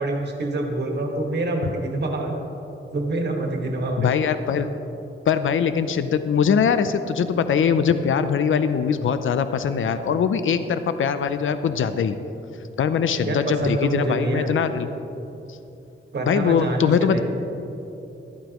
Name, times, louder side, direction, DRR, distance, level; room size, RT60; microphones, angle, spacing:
voice 1, 0.0-2.3 2.9-4.1 13.2-14.5 16.1-17.2, right 2 dB, 55° right, 1 dB, 1.6 m, -26 dB
voice 2, 4.0-4.7 5.3-12.2 12.8-14.9 15.5-15.6 16.3-17.2, left 7 dB, 70° left, 10 dB, 0.5 m, -22 dB
14.0 x 12.5 x 3.0 m, 2.9 s
wide cardioid pair, 165°, 21 cm